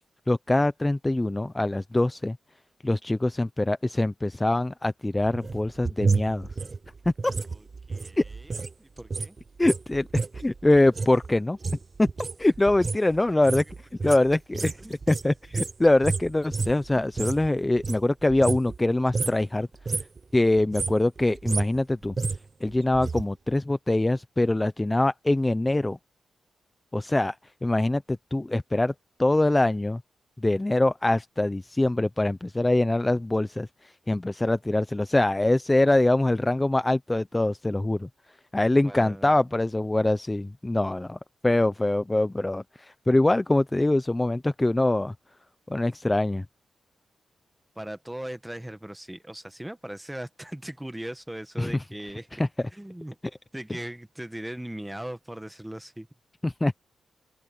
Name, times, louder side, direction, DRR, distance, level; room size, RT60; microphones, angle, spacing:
voice 1, 0.3-2.4 2.8-6.5 7.2-7.3 8.2-8.3 9.6-11.6 12.0-12.1 12.4-13.6 14.0-14.8 15.1-19.7 20.3-22.1 22.6-26.0 26.9-27.3 27.6-28.9 29.2-30.0 30.4-38.1 38.5-45.1 45.7-46.4 51.6-51.8 52.4-52.5 56.4-56.8, left 2 dB, 15° left, 0.5 m, -24 dB
sound 1, 5.2-8.7 9.0-17.5 17.7-18.8 19.1-19.4 19.7-20.2 20.6-23.2 23.5-23.6, right 4 dB, 35° right, 0.7 m, -31 dB
voice 2, 7.5-8.5 8.8-9.4 12.6-12.7 13.3-13.4 14.8-15.0 16.9-17.0 38.8-39.3 47.7-52.4 52.7-53.2 53.5-56.1, right 1 dB, 5° right, 1.5 m, -39 dB
cardioid pair, 90°, 0 cm